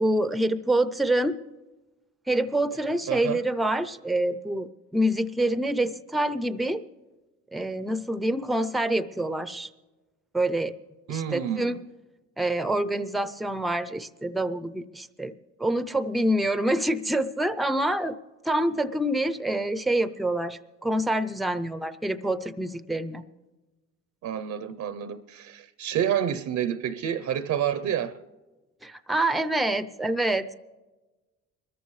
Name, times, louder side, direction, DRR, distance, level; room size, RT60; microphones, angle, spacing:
voice 1, 0.0-1.4 2.3-4.7 4.9-6.8 7.5-9.7 10.3-10.7 11.1-11.7 12.4-15.3 15.6-18.1 18.4-23.2 28.8-30.5, right 1 dB, ahead, 0.5 m, -26 dB
voice 2, 3.1-3.4 11.1-11.8 24.2-28.1, right 9 dB, 70° right, 0.7 m, -29 dB
23.0 x 14.0 x 3.2 m
cardioid pair, 90°, 30 cm